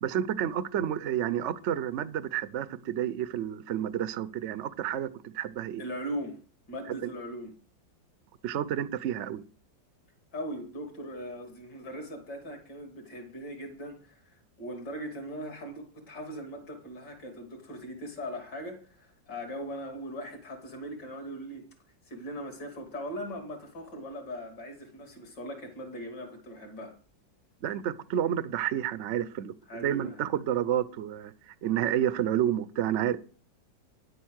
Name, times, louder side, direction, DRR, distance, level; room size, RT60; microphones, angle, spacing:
voice 1, 0.0-5.8 7.0-7.1 8.4-9.4 27.6-33.2, right 10 dB, 65° right, 0.7 m, -30 dB
voice 2, 5.8-6.4 6.7-7.5 10.3-21.7 22.1-27.0 29.7-30.3, equal, 65° left, 3.3 m, -40 dB
10.0 x 8.2 x 6.3 m
omnidirectional pair, 2.0 m